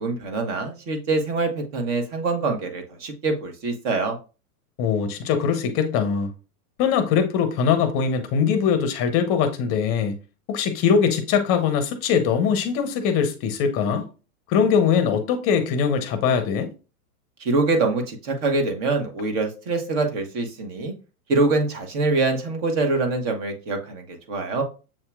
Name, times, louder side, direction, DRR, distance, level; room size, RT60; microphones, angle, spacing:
voice 1, 0.0-4.2 17.4-20.9 21.3-24.6, right 3 dB, 45° right, 1.3 m, -24 dB
voice 2, 4.8-6.3 6.8-10.2 10.5-14.1 14.5-16.7, left 6 dB, 30° left, 0.6 m, -22 dB
7.3 x 2.8 x 2.3 m
hypercardioid pair, 125°, 46 cm